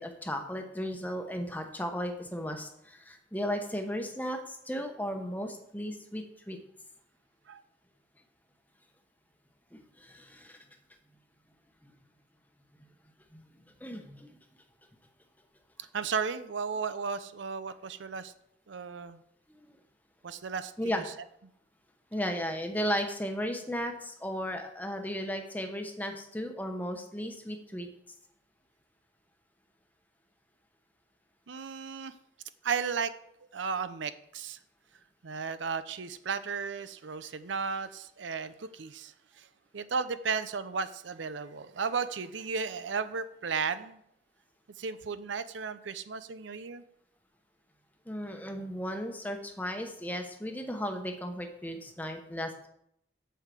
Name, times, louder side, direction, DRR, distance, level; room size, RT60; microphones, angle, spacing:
voice 1, 0.0-6.6 9.7-10.6 11.8-11.9 13.3-14.4 19.5-19.8 20.8-21.0 22.1-27.9 48.1-52.7, equal, 10° left, 4 dB, 1.0 m, -35 dB
voice 2, 15.9-18.3 18.7-19.2 20.2-21.0 31.5-32.1 32.6-33.1 33.5-34.6 35.2-39.5 39.7-44.0 44.8-46.8, right 5 dB, 90° right, 13 dB, 0.6 m, -34 dB
8.3 x 5.6 x 7.5 m, 0.75 s
head